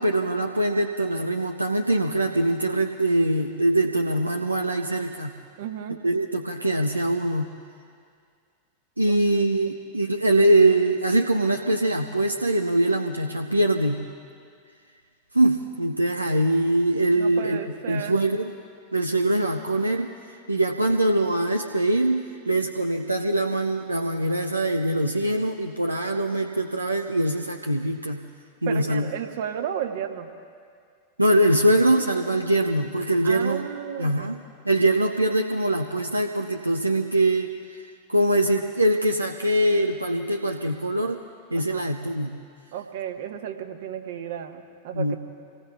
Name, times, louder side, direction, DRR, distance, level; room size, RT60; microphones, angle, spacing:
voice 1, 0.0-5.3 6.0-7.5 9.0-14.0 15.3-18.5 18.9-20.1 20.5-28.2 28.6-29.0 31.2-33.6 34.0-34.4 34.6-41.2 41.5-42.3 44.9-45.2, right 1 dB, 85° right, 4 dB, 0.6 m, -23 dB
voice 2, 5.6-6.0 9.1-9.4 17.1-18.1 28.7-30.3 33.2-34.3 41.5-41.8 42.7-45.2, right 9 dB, 55° right, 6 dB, 1.2 m, -33 dB
27.0 x 19.0 x 2.4 m, 2.2 s
figure-of-eight pair, 90°, 0 cm